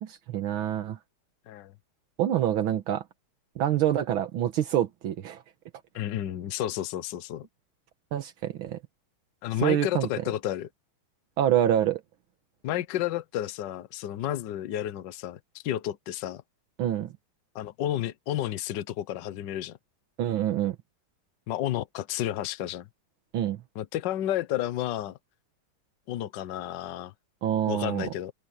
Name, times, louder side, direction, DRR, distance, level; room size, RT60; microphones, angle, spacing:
voice 1, 0.0-1.0 2.2-3.0 3.6-5.4 8.1-8.8 9.6-10.1 11.4-12.0 16.8-17.1 20.2-20.8 23.3-23.6 27.4-28.1, right 11 dB, 80° right, 1.9 m, -26 dB
voice 2, 5.9-7.5 9.4-10.7 12.6-16.4 17.5-19.8 21.5-22.9 23.7-25.2 26.1-27.1 27.7-28.3, left 12 dB, 65° left, 1.4 m, -31 dB
omnidirectional pair, 2.2 m